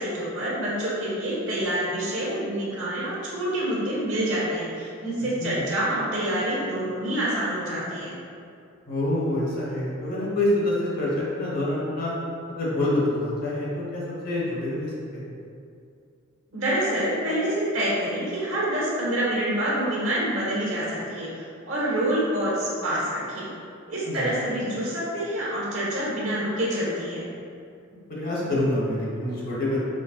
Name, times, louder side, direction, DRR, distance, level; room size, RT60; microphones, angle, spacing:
voice 1, 0.0-8.1 16.5-23.5 23.9-27.2, right 1 dB, 65° right, -7 dB, 1.3 m, -27 dB
voice 2, 8.9-12.1 12.5-15.3 24.0-24.3 27.9-29.9, left 1 dB, 45° left, -6 dB, 1.0 m, -27 dB
5.2 x 3.3 x 2.4 m, 2.4 s
head